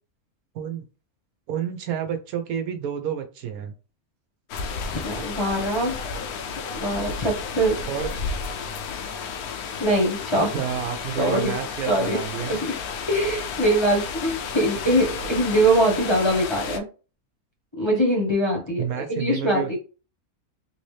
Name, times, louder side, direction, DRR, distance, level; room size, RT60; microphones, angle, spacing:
voice 1, 1.5-3.7 7.9-8.1 10.5-12.6 18.8-19.8, right 9 dB, 75° right, 6 dB, 1.1 m, -30 dB
sound 1, 4.5-16.8, left 5 dB, 80° left, 1.1 m, -32 dB
voice 2, 4.9-6.0 6.7-7.8 9.8-10.5 11.2-11.5 11.9-12.2 12.5-12.8 13.1-16.8 17.8-19.8, right 1 dB, 20° left, -3 dB, 0.9 m, -23 dB
3.3 x 2.8 x 3.2 m, 0.33 s
omnidirectional pair, 1.6 m